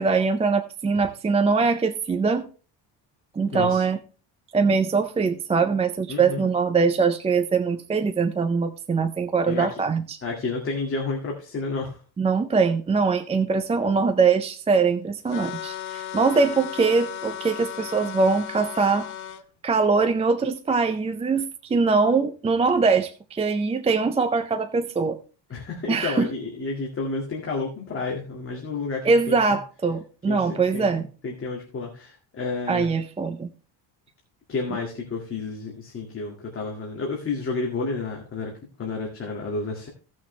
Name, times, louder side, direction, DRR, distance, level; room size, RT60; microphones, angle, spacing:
voice 1, 0.0-2.4 3.4-4.0 4.5-10.2 12.2-19.1 19.6-25.2 25.9-26.3 29.0-31.1 32.7-33.5, right 4 dB, 15° right, 0.4 m, -22 dB
voice 2, 3.5-3.8 6.1-6.5 9.5-9.8 10.2-12.0 25.5-29.4 30.3-32.9 34.5-38.5 38.8-39.9, left 3 dB, 30° left, 2.0 m, -31 dB
sound 1, 15.3-19.4, left 11 dB, 85° left, 1.1 m, -35 dB
16.5 x 6.2 x 3.2 m
cardioid pair, 160°, 45 cm